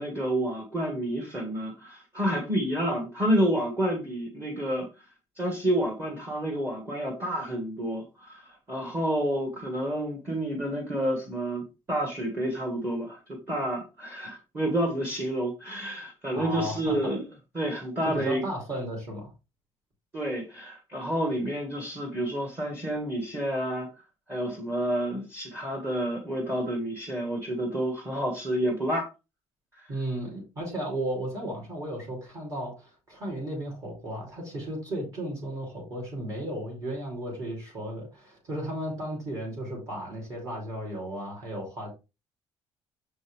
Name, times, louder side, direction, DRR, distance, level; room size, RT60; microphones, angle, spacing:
voice 1, 0.0-4.9 5.4-17.2 17.5-18.5 20.1-23.9 24.3-29.1 29.8-29.9, right 1 dB, 15° right, 0 dB, 1.6 m, -29 dB
voice 2, 16.3-17.1 18.0-19.3 29.9-41.9, right 1 dB, 35° right, -2 dB, 3.2 m, -34 dB
7.0 x 5.2 x 3.4 m, 0.27 s
cardioid pair, 180°, 10 cm